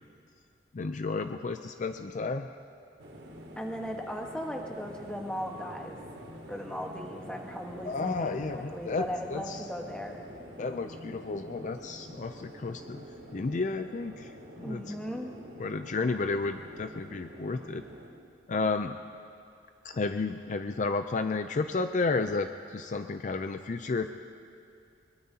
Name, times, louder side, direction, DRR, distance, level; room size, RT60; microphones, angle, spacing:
voice 1, 0.7-2.5 7.8-9.6 10.6-13.0 13.3-14.3 14.6-14.9 15.6-17.8 18.5-19.0 19.8-24.1, left 3 dB, 45° left, 8 dB, 0.4 m, -32 dB
sound 1, 3.0-18.1, equal, 70° right, 2.6 m, -47 dB
voice 2, 3.6-6.0 6.5-10.2 14.6-15.3, equal, 5° left, 1 dB, 1.3 m, -37 dB
22.0 x 21.5 x 2.8 m, 2.4 s
head